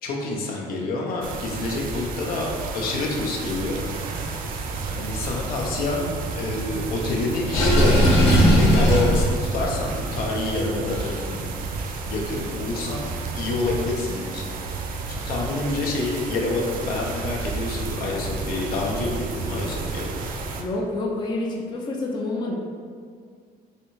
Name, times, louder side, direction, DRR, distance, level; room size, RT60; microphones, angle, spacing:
voice 1, 0.0-3.8 4.9-11.4 12.0-13.0 13.3-14.5 15.1-20.1, left 2 dB, 70° left, -1 dB, 0.6 m, -27 dB
sound 1, 1.2-20.6, right 3 dB, 65° right, 0.4 m, -31 dB
Water / Sink (filling or washing), 7.5-9.3, equal, 45° left, 1.0 m, -17 dB
voice 2, 20.6-22.5, left 2 dB, 30° left, -2 dB, 0.4 m, -28 dB
3.2 x 2.7 x 3.0 m, 2.1 s
cardioid pair, 130°, 16 cm